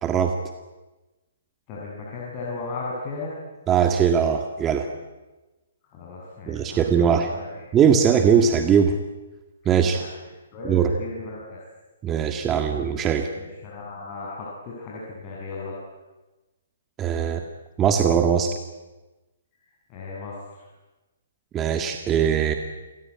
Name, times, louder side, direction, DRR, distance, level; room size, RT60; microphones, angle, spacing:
voice 1, 0.0-0.4 3.7-4.9 6.5-7.3 7.7-9.0 9.7-10.0 10.7-10.9 12.0-13.3 17.0-17.4 17.8-18.5 21.5-22.5, right 7 dB, 20° right, 5 dB, 1.9 m, -20 dB
voice 2, 1.7-3.4 5.9-7.7 9.6-10.1 10.5-11.6 13.3-15.7 19.6-20.7, left 3 dB, 30° left, -4 dB, 7.4 m, -36 dB
28.0 x 21.0 x 9.7 m, 1.1 s
hypercardioid pair, 150°, 0 cm